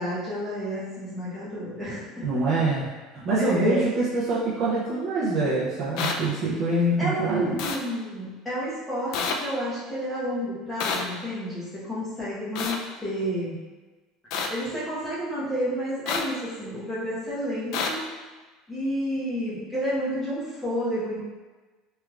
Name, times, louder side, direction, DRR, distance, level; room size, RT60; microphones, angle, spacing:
voice 1, 0.0-2.3 3.1-3.9 7.0-13.6 14.5-18.0 18.7-21.2, equal, 5° left, -10 dB, 1.0 m, -30 dB
voice 2, 2.2-2.9 3.2-7.7, right 2 dB, 30° right, -7 dB, 0.5 m, -25 dB
sound 1, 6.0-6.1 7.6-7.8 9.1-9.3 10.8-11.0 12.5-12.8 14.3-14.5 16.1-16.2 17.7-17.9, left 5 dB, 50° left, 0.3 m, -27 dB
3.4 x 3.2 x 2.4 m, 1.3 s
cardioid pair, 175°, 0 cm